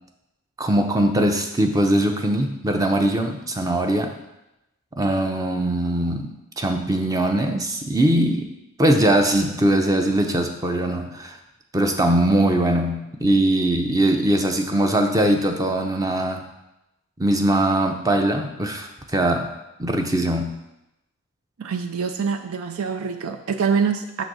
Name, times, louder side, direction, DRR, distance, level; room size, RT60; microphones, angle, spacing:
voice 1, 0.6-4.1 5.0-8.5 8.8-11.4 11.7-16.5 17.2-19.5 19.8-20.5, right 1 dB, 15° right, 5 dB, 0.6 m, -21 dB
voice 2, 21.6-24.2, right 6 dB, 80° right, 5 dB, 0.5 m, -25 dB
6.9 x 4.0 x 6.1 m, 0.92 s
head